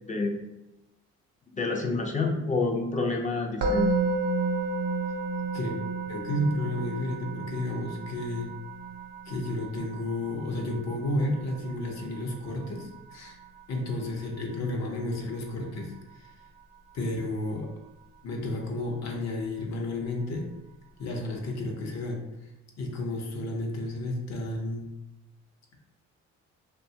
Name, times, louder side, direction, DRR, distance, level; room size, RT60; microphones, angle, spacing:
voice 1, 0.1-0.4 1.5-3.9, left 3 dB, 25° left, 1 dB, 0.4 m, -28 dB
Musical instrument, 3.6-14.7, right 3 dB, 80° right, 0.6 m, -33 dB
voice 2, 6.1-8.5 9.3-13.4 13.7-16.3 16.9-17.7 18.2-20.5 21.0-22.5 22.8-24.9, left 1 dB, 60° left, 1 dB, 0.7 m, -32 dB
2.7 x 2.2 x 2.7 m, 0.92 s
cardioid pair, 90°, 30 cm